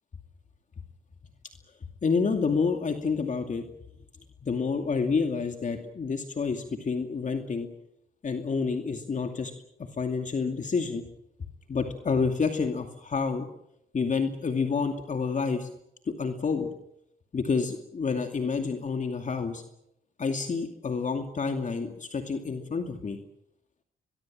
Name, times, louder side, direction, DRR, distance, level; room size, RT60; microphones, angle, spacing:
voice 1, 2.0-3.6 4.4-7.7 8.2-9.5 10.0-11.0 11.7-13.5 13.9-15.7 16.1-16.7 17.3-19.6 20.2-23.2, left 5 dB, 40° left, 5 dB, 2.5 m, -28 dB
23.0 x 22.5 x 7.6 m, 0.78 s
cardioid pair, 90°, 20 cm